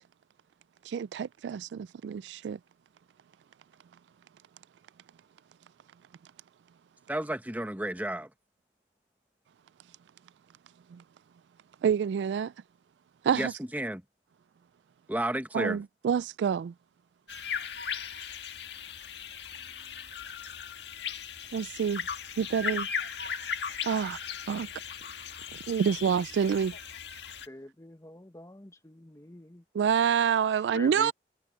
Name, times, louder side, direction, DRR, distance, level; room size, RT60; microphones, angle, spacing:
voice 1, 0.8-2.6 10.9-11.0 11.8-12.5 13.2-13.5 15.5-16.7 21.5-22.1 22.4-22.9 23.8-24.2 24.5-24.7 25.5-26.8 29.7-31.1, right 7 dB, 80° right, 0.3 m, -27 dB
voice 2, 7.1-8.3 13.3-14.0 15.1-15.8, right 1 dB, 10° right, 1.2 m, -32 dB
sound 1, 17.3-27.5, left 7 dB, 75° left, 1.7 m, -37 dB
voice 3, 27.5-29.6 30.5-31.1, left 1 dB, 15° left, 1.1 m, -45 dB
head